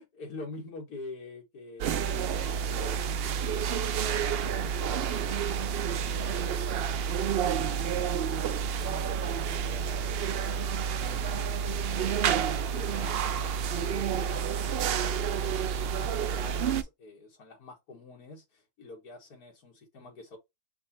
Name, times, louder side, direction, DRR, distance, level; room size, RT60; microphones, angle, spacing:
voice 1, 0.0-3.4 4.0-7.0 8.2-20.4, left 2 dB, 85° left, 2.1 m, -47 dB
sound 1, 1.8-16.8, right 7 dB, 85° right, 0.5 m, -29 dB
4.7 x 2.5 x 4.3 m
omnidirectional pair, 1.6 m